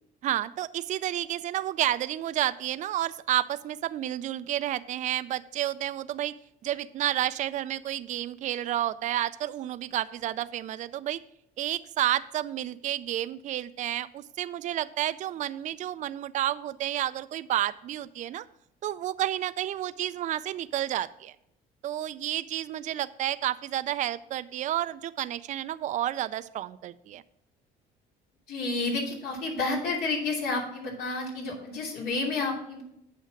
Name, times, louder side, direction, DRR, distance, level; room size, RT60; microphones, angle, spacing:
voice 1, 0.2-6.3 6.6-11.2 11.6-18.5 18.8-21.3 21.8-27.2, right 12 dB, 45° right, 13 dB, 0.4 m, -30 dB
voice 2, 28.5-32.8, left 3 dB, 70° left, -1 dB, 2.9 m, -30 dB
8.4 x 5.9 x 5.8 m, 0.78 s
cardioid pair, 110°, 17 cm